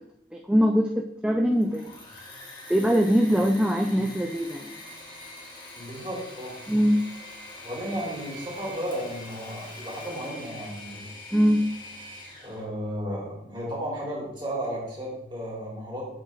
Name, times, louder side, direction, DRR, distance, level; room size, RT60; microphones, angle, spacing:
voice 1, 0.3-1.9 2.7-4.7 6.7-7.1 11.3-11.7, equal, 5° right, 2 dB, 0.3 m, -22 dB
Engine / Mechanisms, 1.4-12.6, left 1 dB, 25° left, 1.5 m, -43 dB
voice 2, 5.8-6.5 7.6-11.1 12.4-16.1, equal, 25° right, -5 dB, 2.8 m, -34 dB
7.7 x 7.2 x 3.1 m, 0.79 s
head